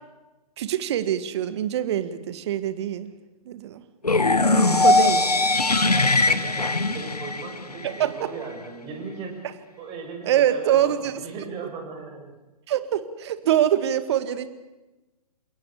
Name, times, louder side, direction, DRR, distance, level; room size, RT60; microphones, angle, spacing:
voice 1, 0.6-3.1 3.5-3.8 4.7-5.2 7.8-8.3 10.2-11.2 12.7-14.5, right 11 dB, 45° right, 12 dB, 1.9 m, -24 dB
sound 1, 4.0-8.0, left 2 dB, 85° left, 1.5 m, -20 dB
voice 2, 5.9-9.4 9.8-12.4, right 5 dB, 25° right, 3 dB, 6.9 m, -37 dB
29.0 x 17.0 x 8.4 m, 1.1 s
figure-of-eight pair, 120°, 19 cm